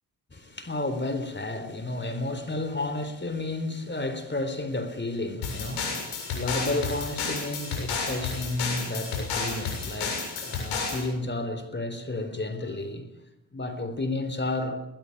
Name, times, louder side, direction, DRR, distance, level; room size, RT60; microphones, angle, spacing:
voice 1, 0.3-13.1 13.5-14.9, left 2 dB, 25° left, 3.8 m, -32 dB
sound 1, 5.4-11.1, left 4 dB, 85° left, 7.5 m, -31 dB
20.5 x 20.0 x 6.7 m
supercardioid pair, 50°, 41 cm